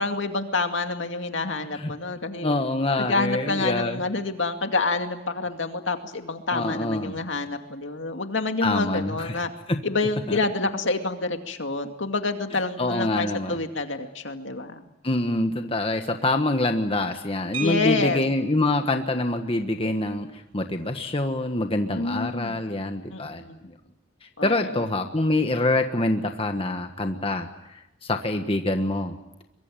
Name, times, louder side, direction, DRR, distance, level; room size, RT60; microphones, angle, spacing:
voice 1, 0.0-2.6 3.0-9.5 9.8-14.8 17.6-18.2 21.9-22.6 23.1-23.6 24.4-24.9, left 3 dB, 65° left, 6 dB, 2.3 m, -28 dB
voice 2, 2.4-4.0 6.5-7.1 8.6-9.4 9.7-9.8 10.3-10.4 12.8-13.6 15.0-23.7 24.2-29.1, left 2 dB, 30° left, 5 dB, 1.4 m, -26 dB
sound 1, 17.5-18.6 20.1-20.2 20.5-20.7 21.1-21.4, right 3 dB, 70° right, 4.3 m, -36 dB
23.5 x 23.5 x 9.1 m, 0.89 s
head